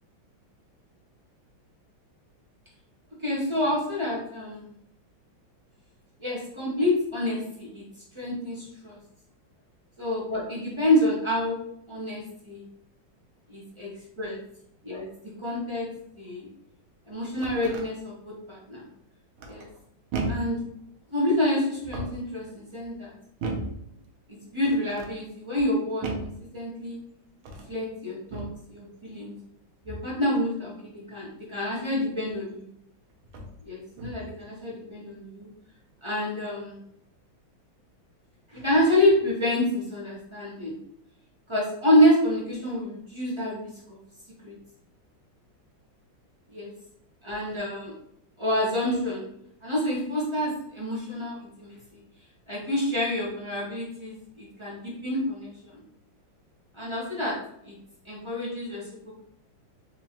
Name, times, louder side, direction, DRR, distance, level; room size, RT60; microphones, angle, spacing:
voice 1, 3.2-4.7 6.2-7.8 8.1-9.0 10.0-11.6 11.9-12.6 13.5-13.9 14.2-14.4 14.8-15.1 15.4-15.9 16.1-16.5 17.1-18.8 19.5-19.7 20.3-20.6 21.1-23.1 24.4-27.0 27.7-29.3 29.8-32.7 33.6-35.5 36.0-36.8 38.5-40.8 41.5-44.0 44.4-44.5 46.5-46.7 47.2-47.9 48.4-49.2 49.6-52.0 52.5-55.8 56.7-57.4 57.6-57.7 58.0-58.8, left 1 dB, 35° right, -6 dB, 0.4 m, -27 dB
sound 1, 17.1-17.9 19.4-19.8 20.1-20.6 21.7-22.3 23.4-23.8 24.6-25.1 26.0-26.4 27.4-27.7 28.3-28.6 29.8-30.2 32.3-32.4 33.2-33.6 34.0-34.4, right 2 dB, 80° right, 1.5 m, -35 dB
4.2 x 2.8 x 2.8 m, 0.74 s
omnidirectional pair, 2.2 m